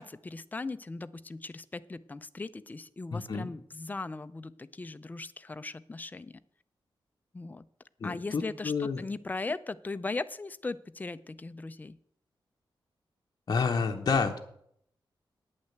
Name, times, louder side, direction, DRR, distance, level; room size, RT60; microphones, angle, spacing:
voice 1, 0.0-6.4 7.3-7.7 8.0-12.0, left 3 dB, 20° left, 13 dB, 0.4 m, -38 dB
voice 2, 3.1-3.5 8.0-9.0 13.5-14.4, left 5 dB, 45° left, 2 dB, 0.9 m, -29 dB
9.1 x 8.6 x 7.9 m, 0.69 s
wide cardioid pair, 175°, 9 cm